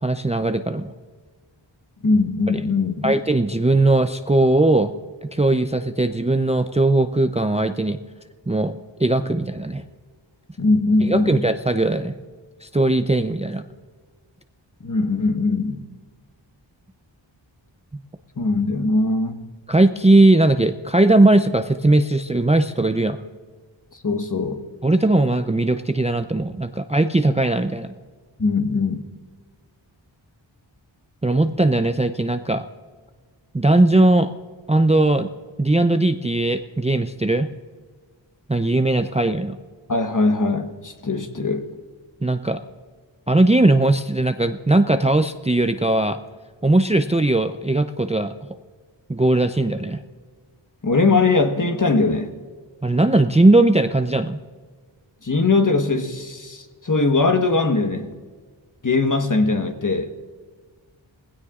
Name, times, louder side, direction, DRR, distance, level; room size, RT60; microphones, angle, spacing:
voice 1, 0.0-0.9 3.0-4.9 5.2-8.0 8.5-9.8 11.1-12.1 12.6-13.6 19.7-23.2 24.8-27.9 31.2-32.6 33.5-34.3 34.7-35.3 35.6-37.5 38.5-39.6 42.2-42.6 43.3-46.2 46.6-48.3 49.1-50.0 52.8-54.4, right 2 dB, 15° right, 0.5 m, -19 dB
voice 2, 2.0-3.2 10.6-11.4 14.8-15.8 18.4-19.4 24.0-24.6 28.4-29.0 39.9-41.7 50.8-52.3 55.2-58.2 58.8-60.1, left 3 dB, 40° left, 1.3 m, -20 dB
19.0 x 16.5 x 2.5 m
wide cardioid pair, 50°, 47 cm